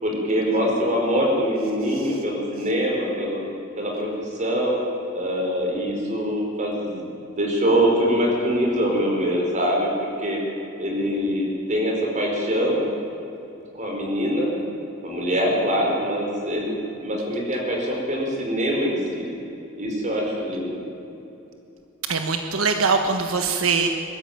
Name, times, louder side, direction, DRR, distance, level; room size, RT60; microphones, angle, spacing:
voice 1, 0.0-3.4 3.8-4.8 5.1-7.1 7.4-9.9 10.2-10.4 10.8-12.9 13.7-14.5 15.0-16.7 17.0-19.2 19.8-20.8, equal, 35° right, 0 dB, 5.2 m, -23 dB
voice 2, 22.1-23.9, right 4 dB, 85° right, 5 dB, 1.3 m, -22 dB
22.5 x 13.0 x 9.2 m, 2.9 s
head